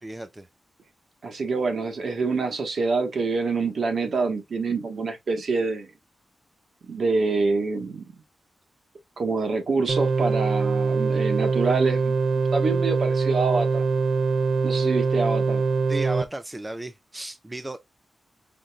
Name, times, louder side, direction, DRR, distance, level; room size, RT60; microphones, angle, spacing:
voice 1, 0.0-0.5 15.9-17.8, right 1 dB, 15° right, 0.4 m, -34 dB
voice 2, 1.2-5.9 6.9-8.0 9.2-13.8 14.6-15.7, right 4 dB, 55° right, 1.3 m, -26 dB
sound 1, 9.9-16.2, right 4 dB, 70° right, 0.8 m, -23 dB
5.1 x 3.8 x 2.3 m
wide cardioid pair, 170°, 0 cm